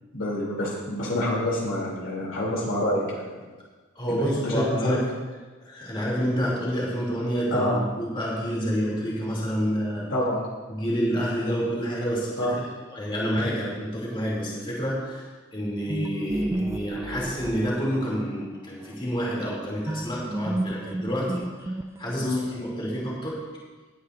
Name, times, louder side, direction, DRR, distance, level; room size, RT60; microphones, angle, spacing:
voice 1, 0.1-3.4 4.1-5.0 7.5-7.8 10.1-10.5 12.4-12.5 22.2-22.4, left 1 dB, 65° left, -3 dB, 3.1 m, -27 dB
voice 2, 3.9-5.0 5.6-10.1 10.7-12.6 12.9-21.7 22.0-23.4, equal, 25° left, -5 dB, 2.8 m, -28 dB
sound 1, 15.9-18.4 19.9-22.3, right 1 dB, 15° right, 0.4 m, -31 dB
19.0 x 9.5 x 2.6 m, 1.3 s
head